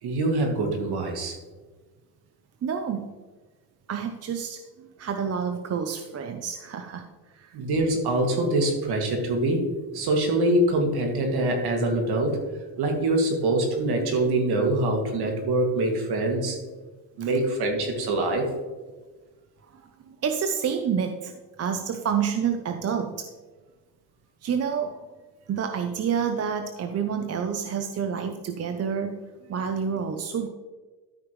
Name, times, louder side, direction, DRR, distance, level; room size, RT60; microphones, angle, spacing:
voice 1, 0.0-1.4 7.5-12.4 12.8-16.6 17.2-18.5, right 1 dB, 60° right, 2 dB, 2.3 m, -24 dB
voice 2, 2.6-3.1 3.9-7.1 7.3-7.6 17.2-17.3 19.7-23.3 24.4-25.0 25.5-29.2 29.5-30.5, right 7 dB, 35° right, 6 dB, 0.7 m, -29 dB
13.0 x 5.9 x 3.2 m, 1.3 s
supercardioid pair, 95°, 43 cm